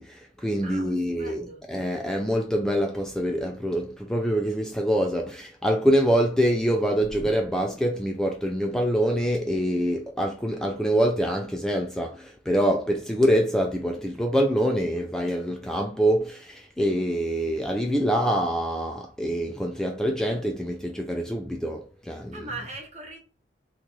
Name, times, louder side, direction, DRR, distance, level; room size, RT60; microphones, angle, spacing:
voice 1, 0.0-22.5, equal, 5° left, 0.3 m, -25 dB
voice 2, 0.6-1.6 22.3-23.2, right 3 dB, 40° right, 1.1 m, -40 dB
3.1 x 2.4 x 3.8 m
head